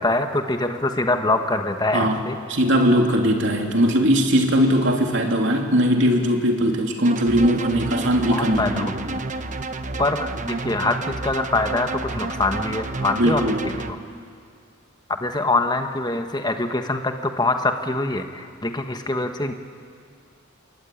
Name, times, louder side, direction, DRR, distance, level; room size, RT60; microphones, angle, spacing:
voice 1, 0.0-2.4 8.3-9.0 10.0-14.0 15.1-19.5, left 2 dB, 20° left, 6 dB, 1.4 m, -24 dB
voice 2, 2.5-9.1 13.2-13.7, equal, 60° right, 2 dB, 3.2 m, -20 dB
sound 1, 7.0-13.9, right 2 dB, 35° right, 1.0 m, -30 dB
28.0 x 22.5 x 9.3 m, 2.3 s
head